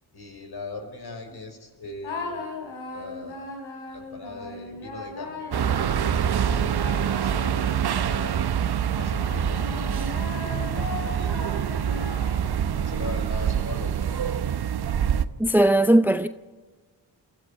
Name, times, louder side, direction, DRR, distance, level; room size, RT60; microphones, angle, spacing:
voice 1, 0.1-2.4 2.9-3.5 3.9-8.5 9.0-10.1 10.3-11.7 12.4-14.5, left 3 dB, 55° left, 5.5 m, -40 dB
sound 1, 2.0-8.3 8.8-12.8, left 3 dB, 85° left, 4.5 m, -38 dB
sound 2, 5.5-15.2, right 8 dB, 55° right, 1.0 m, -25 dB
voice 2, 15.4-16.3, right 1 dB, 5° right, 0.7 m, -18 dB
22.5 x 14.0 x 8.7 m
supercardioid pair, 45°, 46 cm